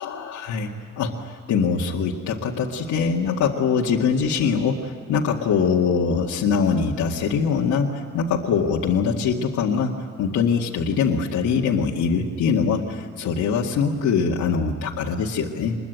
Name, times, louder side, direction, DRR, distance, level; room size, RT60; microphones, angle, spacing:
voice 1, 0.0-15.8, left 6 dB, 75° left, -2 dB, 2.1 m, -23 dB
25.0 x 22.0 x 9.3 m, 2.2 s
cardioid pair, 90°, 30 cm